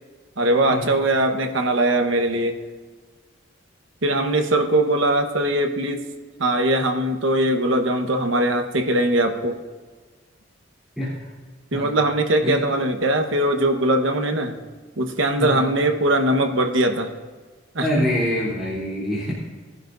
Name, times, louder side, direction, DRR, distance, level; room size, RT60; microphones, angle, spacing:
voice 1, 0.4-2.5 4.0-6.0 6.4-9.5 11.7-14.6 15.0-17.1 17.7-17.9, right 1 dB, 80° right, 5 dB, 1.2 m, -21 dB
voice 2, 17.8-19.3, equal, ahead, -10 dB, 3.2 m, -24 dB
20.0 x 11.0 x 2.6 m, 1.4 s
head